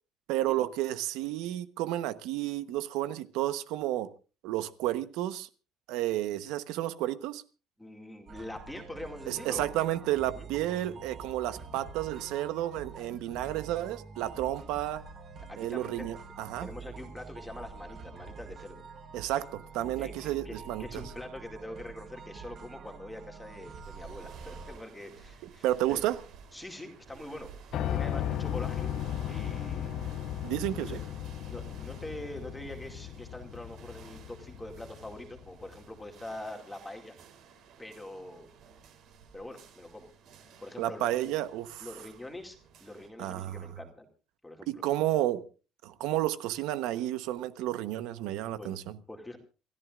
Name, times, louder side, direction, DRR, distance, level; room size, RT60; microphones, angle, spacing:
voice 1, 0.3-4.1 4.4-5.5 5.9-7.4 9.3-15.0 15.6-16.7 19.1-21.0 25.6-26.2 30.4-31.0 40.8-41.9 43.2-43.6 44.7-45.4 45.8-49.0, right 14 dB, 80° right, 1.1 m, -31 dB
voice 2, 7.8-9.7 10.3-10.5 14.3-14.6 15.5-16.1 16.6-18.8 20.0-26.0 26.5-27.5 27.9-29.0 29.3-30.4 30.8-31.0 31.5-37.2 37.8-38.5 39.3-40.1 40.6-41.2 41.8-44.1 44.4-44.8 48.6-48.8 49.1-49.4, left 1 dB, 5° left, 2.3 m, -44 dB
sound 1, 8.3-24.8, right 4 dB, 40° right, 5.2 m, -46 dB
sound 2, 23.7-43.1, right 6 dB, 55° right, 3.5 m, -53 dB
Piano, 27.7-35.7, left 10 dB, 50° left, 0.6 m, -36 dB
28.0 x 14.5 x 2.5 m
cardioid pair, 165°, 0 cm